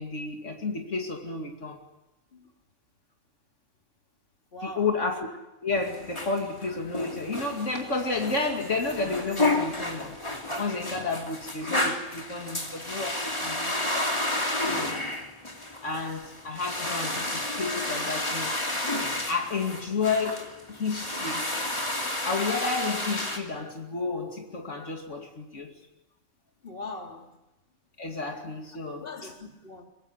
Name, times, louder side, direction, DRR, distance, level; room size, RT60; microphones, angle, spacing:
voice 1, 0.0-1.8 4.6-5.3 5.6-10.2 10.6-14.2 14.6-15.0 15.8-18.7 19.3-21.5 22.2-25.7 28.0-29.3, left 3 dB, 70° left, 2.8 m, -31 dB
voice 2, 4.5-4.9 26.6-27.3 29.0-29.8, left 2 dB, 45° left, 3.0 m, -40 dB
sound 1, 5.7-23.4, left 1 dB, 20° left, 2.9 m, -31 dB
23.5 x 21.0 x 9.8 m
omnidirectional pair, 1.3 m